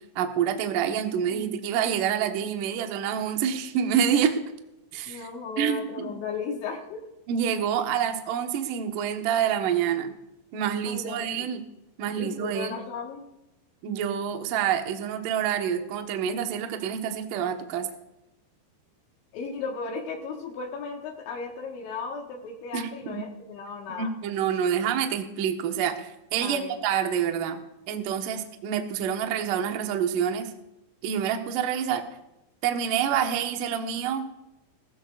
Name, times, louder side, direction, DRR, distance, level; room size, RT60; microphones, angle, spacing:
voice 1, 0.2-4.4 4.9-5.2 5.6-6.1 7.3-10.1 10.5-11.6 12.0-12.8 13.8-17.9 22.7-23.2 24.0-27.6 27.9-30.5 31.0-32.1 32.6-34.3, right 8 dB, 75° right, 4 dB, 2.0 m, -27 dB
voice 2, 5.1-7.0 10.8-11.5 12.2-13.2 19.3-24.1 26.4-26.8, left 5 dB, 75° left, 0 dB, 3.5 m, -35 dB
19.5 x 15.5 x 2.4 m, 0.92 s
omnidirectional pair, 5.7 m